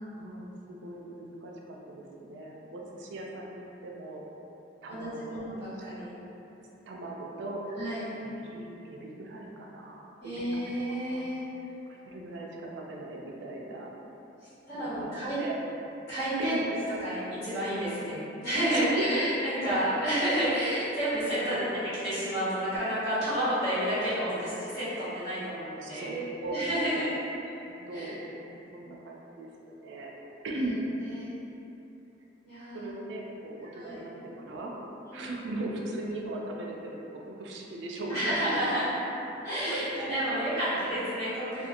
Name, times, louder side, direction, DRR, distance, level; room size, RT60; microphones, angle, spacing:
voice 1, 0.1-4.2 4.8-5.4 6.9-7.6 8.2-10.6 11.0-11.3 11.9-13.9 14.7-15.6 16.4-16.6 18.7-19.3 19.6-19.9 21.3-21.8 23.9-24.4 25.8-27.1 27.6-30.1 30.4-30.8 32.7-34.7 35.1-38.5 39.7-40.4 40.7-40.9, right 2 dB, 65° right, -2 dB, 0.3 m, -38 dB
voice 2, 4.9-6.2 7.7-8.1 10.2-11.4 14.7-15.4 16.1-16.6 17.0-21.6 22.0-26.2 26.5-27.1 27.9-28.1 30.5-30.6 31.2-31.3 32.4-32.9 33.7-34.0 35.1-35.5 38.1-38.8 39.4-41.7, equal, 60° left, -14 dB, 1.4 m, -30 dB
2.5 x 2.3 x 2.7 m, 3.0 s
head